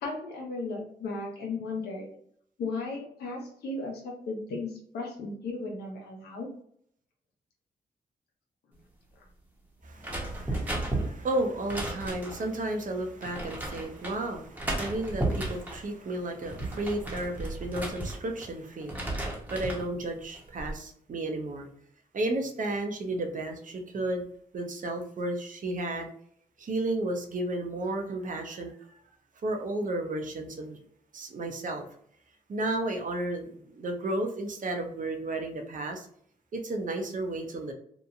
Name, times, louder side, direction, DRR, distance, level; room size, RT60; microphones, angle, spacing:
voice 1, 0.0-2.1 2.6-6.5, left 3 dB, 90° left, 0 dB, 0.8 m, -35 dB
voice 2, 9.8-19.0 19.5-21.7 22.1-24.2 24.5-26.1 26.6-28.7 29.4-30.8 31.1-31.9 32.5-36.1 36.5-37.7, right 2 dB, 55° right, 4 dB, 0.7 m, -33 dB
sound 1, 10.0-12.5 13.2-14.2 14.6-15.8 16.3-18.5 18.8-19.9 20.3-20.8, right 2 dB, 10° right, 0.9 m, -34 dB
2.9 x 2.1 x 2.5 m, 0.64 s
supercardioid pair, 50°, 16 cm